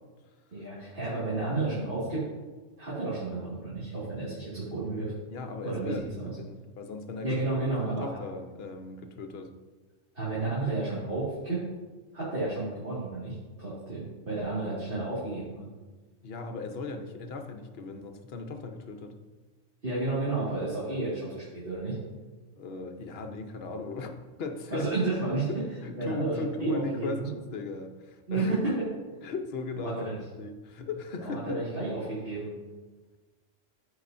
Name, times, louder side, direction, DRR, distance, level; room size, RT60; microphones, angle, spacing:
voice 1, 0.5-2.2 2.8-5.1 5.6-6.4 7.2-8.1 10.1-11.6 12.1-15.7 19.8-21.9 24.7-25.5 26.0-27.3 28.3-28.7 29.8-30.2 31.2-32.6, right 2 dB, 45° right, -10 dB, 2.3 m, -31 dB
voice 2, 5.3-9.5 16.2-19.1 22.6-24.9 25.5-28.5 29.2-30.1 30.4-31.7, left 3 dB, 55° left, 6 dB, 0.9 m, -38 dB
14.0 x 4.9 x 2.6 m, 1.3 s
omnidirectional pair, 1.3 m